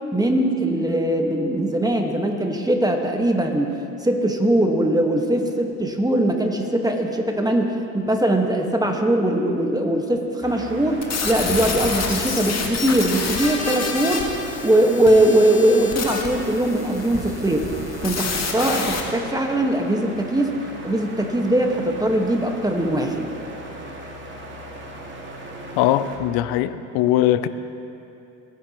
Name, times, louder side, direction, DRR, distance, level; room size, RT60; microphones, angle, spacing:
voice 1, 0.1-3.7 4.0-14.3 14.6-17.7 18.0-20.6 20.8-23.3, right 1 dB, 10° right, 2 dB, 1.6 m, -21 dB
sound 1, 10.4-26.2, right 1 dB, 30° right, 2.3 m, -37 dB
sound 2, 11.0-19.0, left 4 dB, 40° left, 1.9 m, -28 dB
voice 2, 25.8-27.5, left 13 dB, 70° left, 13 dB, 0.7 m, -20 dB
20.5 x 10.0 x 3.1 m, 2.7 s
supercardioid pair, 70°, 39 cm